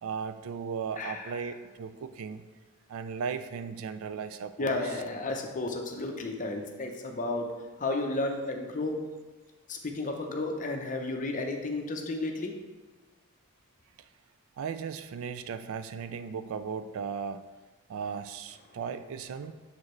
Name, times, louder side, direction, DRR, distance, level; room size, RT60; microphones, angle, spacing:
voice 1, 0.0-2.4 2.9-4.8 14.6-17.4 17.9-19.5, right 6 dB, 65° right, 11 dB, 0.3 m, -36 dB
voice 2, 1.0-1.3 4.6-7.5 7.8-9.0 9.7-12.6, left 2 dB, 35° left, 3 dB, 0.7 m, -32 dB
7.0 x 4.8 x 3.1 m, 1.3 s
head